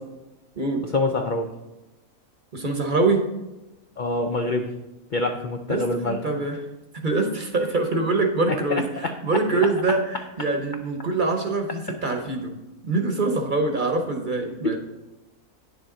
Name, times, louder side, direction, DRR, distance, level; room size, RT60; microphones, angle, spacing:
voice 1, 0.9-1.5 4.0-4.7 5.1-6.2 14.6-14.8, left 2 dB, 65° left, 4 dB, 0.5 m, -25 dB
voice 2, 2.5-3.2 5.7-6.6 6.9-12.5 12.8-14.8, right 3 dB, 40° right, 4 dB, 0.9 m, -24 dB
9.6 x 7.0 x 3.8 m, 1.0 s
omnidirectional pair, 1.6 m